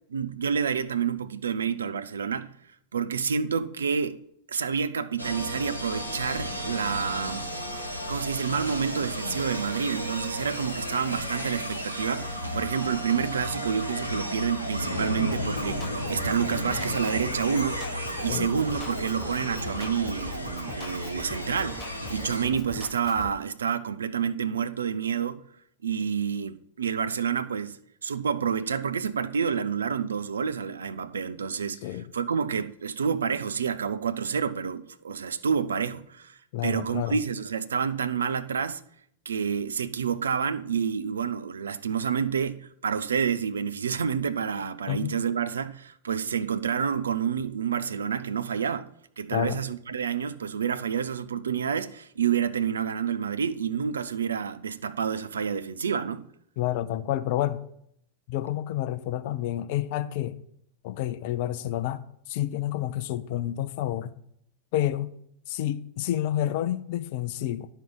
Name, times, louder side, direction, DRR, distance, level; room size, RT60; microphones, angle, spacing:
voice 1, 0.1-2.5 2.9-4.2 4.5-7.5 8.1-17.9 18.2-25.4 25.8-27.8 28.0-31.8 32.1-38.8 39.3-48.9 49.2-56.3, right 7 dB, 70° right, 0.4 m, -29 dB
sound 1, 5.2-22.4, equal, 85° right, 1.0 m, -33 dB
Drum kit, 15.3-23.3, left 4 dB, 25° left, 1.0 m, -43 dB
voice 2, 36.5-37.2 44.9-45.2 49.3-49.6 56.6-57.6 58.3-60.4 60.8-62.0 62.3-64.1 64.7-65.1 65.5-67.7, left 12 dB, 50° left, 0.5 m, -29 dB
10.5 x 4.5 x 5.2 m
figure-of-eight pair, 90°, 0 cm